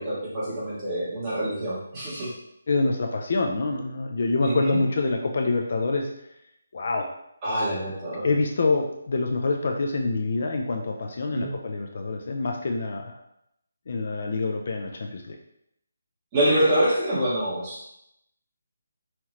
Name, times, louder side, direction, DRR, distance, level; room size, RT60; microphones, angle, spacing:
voice 1, 0.0-2.3 4.4-4.8 7.4-8.3 11.3-11.5 16.3-17.9, right 1 dB, 15° right, -9 dB, 1.6 m, -26 dB
voice 2, 2.7-6.1 6.7-7.1 8.2-13.1 13.9-15.4, left 3 dB, 50° left, 3 dB, 0.5 m, -26 dB
5.6 x 3.0 x 3.1 m, 0.78 s
hypercardioid pair, 170°, 0 cm